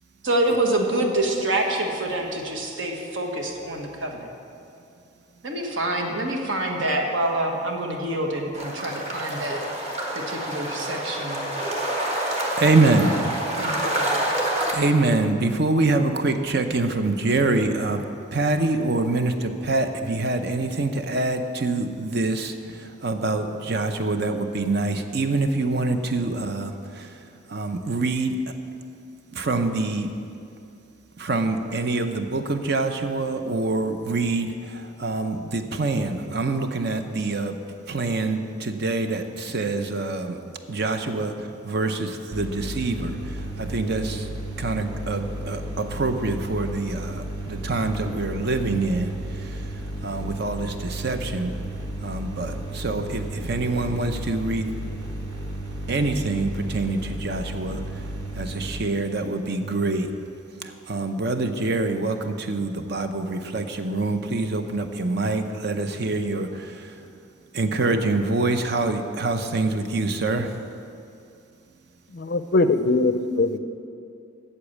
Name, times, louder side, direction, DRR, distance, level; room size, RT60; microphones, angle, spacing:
voice 1, 0.2-4.3 5.4-9.6 10.3-11.4 13.0-13.2 13.5-14.2, right 1 dB, 70° right, 2 dB, 1.3 m, -26 dB
sound 1, 8.5-14.7, right 1 dB, 30° right, 1.4 m, -27 dB
voice 2, 12.6-13.3 14.7-18.0 18.3-27.2 27.5-28.4 29.3-30.1 31.2-37.6 37.9-40.4 40.7-44.3 44.6-49.7 50.0-51.5 52.0-54.7 55.9-57.8 58.3-60.1 60.6-66.9 67.5-70.5, right 2 dB, 55° right, 7 dB, 0.7 m, -25 dB
sound 2, 42.3-58.8, right 1 dB, 90° right, 1.1 m, -33 dB
voice 3, 72.1-73.6, left 3 dB, 50° left, 10 dB, 0.5 m, -21 dB
8.3 x 7.2 x 8.4 m, 2.5 s
head